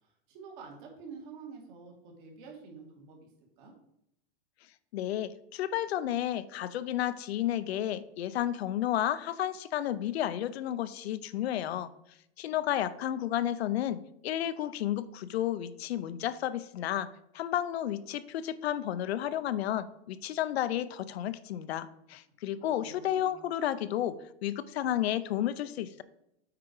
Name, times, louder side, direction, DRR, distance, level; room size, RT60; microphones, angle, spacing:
voice 1, 0.0-3.2 3.6-3.7 22.5-23.3, right 5 dB, 50° right, 0 dB, 2.6 m, -48 dB
voice 2, 4.9-11.9 12.4-17.1 17.3-26.0, left 11 dB, 80° left, 14 dB, 0.7 m, -32 dB
8.4 x 4.9 x 4.8 m, 0.79 s
supercardioid pair, 145°, 31 cm